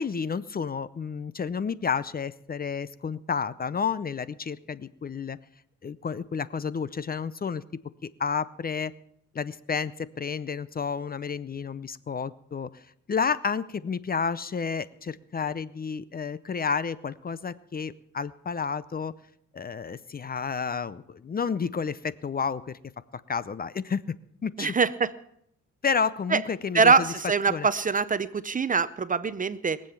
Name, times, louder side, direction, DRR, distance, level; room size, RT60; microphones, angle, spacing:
voice 1, 0.0-5.4 5.8-7.6 8.0-8.9 9.3-12.7 13.1-19.1 19.5-22.8 23.3-24.0 24.4-24.8 25.8-27.1 27.5-27.7, left 6 dB, 30° left, 17 dB, 0.6 m, -31 dB
voice 2, 24.6-25.1 26.3-26.4 26.7-29.8, right 5 dB, 25° right, 15 dB, 0.6 m, -23 dB
21.5 x 7.8 x 7.1 m, 0.72 s
cardioid pair, 90°, 30 cm